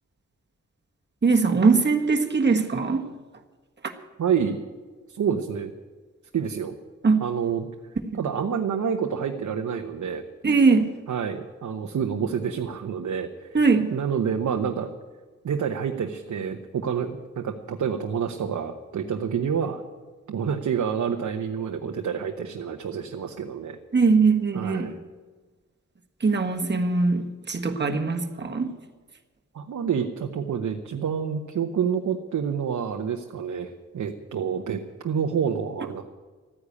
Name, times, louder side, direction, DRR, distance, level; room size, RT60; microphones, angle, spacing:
voice 1, 1.2-3.0 7.0-7.2 8.0-8.2 10.4-10.9 13.5-13.9 23.9-24.9 26.2-28.7, right 4 dB, 35° right, 3 dB, 1.5 m, -21 dB
voice 2, 4.2-4.6 5.1-5.7 6.3-6.7 7.2-7.7 8.2-10.2 11.1-13.6 13.9-14.9 15.4-19.8 20.3-23.8 24.5-25.0 29.5-36.0, right 7 dB, 80° right, 4 dB, 1.0 m, -28 dB
14.0 x 9.9 x 8.3 m, 1.4 s
wide cardioid pair, 95°, 29 cm